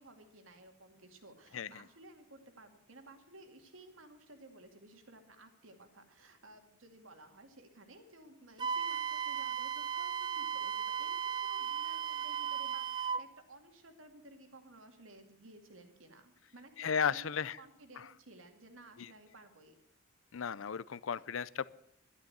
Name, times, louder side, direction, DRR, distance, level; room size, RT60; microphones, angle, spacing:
voice 1, 0.0-19.8, right 2 dB, 80° right, 6 dB, 2.3 m, -56 dB
voice 2, 1.5-1.8 16.8-17.6 18.0-18.1 19.0-19.1 20.3-21.7, left 7 dB, 75° left, 19 dB, 0.5 m, -35 dB
Wind instrument woodwind instrument, 8.6-13.3, right 7 dB, 20° right, 0.5 m, -36 dB
12.0 x 11.5 x 7.9 m, 0.71 s
head